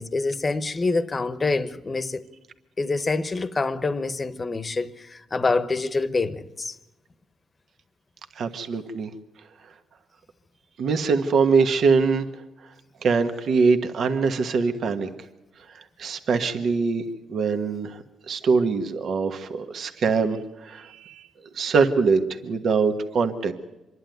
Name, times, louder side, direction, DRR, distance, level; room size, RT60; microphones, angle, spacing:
voice 1, 0.0-2.2 2.8-6.7, left 3 dB, 30° left, 1.0 m, -26 dB
voice 2, 8.3-9.1 10.8-12.3 13.0-15.1 15.7-17.0 17.3-21.3 21.5-23.5, right 5 dB, 60° right, 1.4 m, -23 dB
26.0 x 11.5 x 9.3 m
cardioid pair, 90°, 0 cm